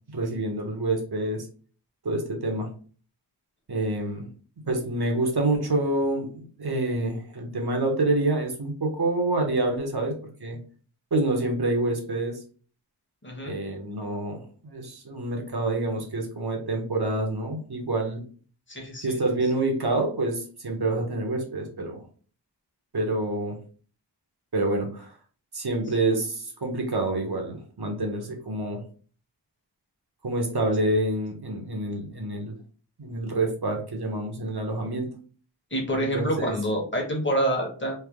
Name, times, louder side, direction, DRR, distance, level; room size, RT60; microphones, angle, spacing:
voice 1, 0.1-1.5 2.0-2.7 3.7-4.3 4.7-10.6 11.1-12.4 13.4-18.2 19.0-22.0 22.9-23.6 24.5-25.2 25.5-28.8 30.2-32.6 33.0-35.1 35.9-36.6, right 2 dB, 60° right, 2 dB, 1.0 m, -27 dB
voice 2, 13.2-13.5 18.7-19.1 35.7-37.9, right 1 dB, 25° left, 0 dB, 1.2 m, -27 dB
3.3 x 2.1 x 3.5 m, 0.42 s
wide cardioid pair, 45°, 43 cm